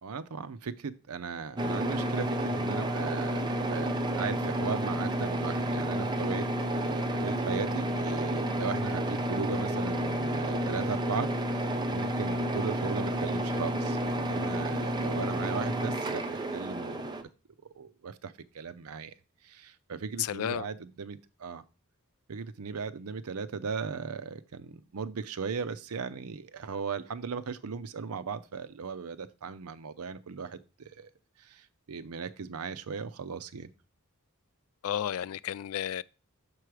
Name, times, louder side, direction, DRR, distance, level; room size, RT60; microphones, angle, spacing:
voice 1, 0.0-6.4 6.7-17.1 17.7-19.1 19.4-21.6 22.3-31.1 31.4-33.7, right 5 dB, 80° right, 0.6 m, -37 dB
sound 1, 1.6-17.2, right 1 dB, 20° right, 0.5 m, -30 dB
voice 2, 20.2-20.6 34.8-36.0, left 10 dB, 70° left, 0.3 m, -32 dB
6.8 x 4.8 x 4.7 m
head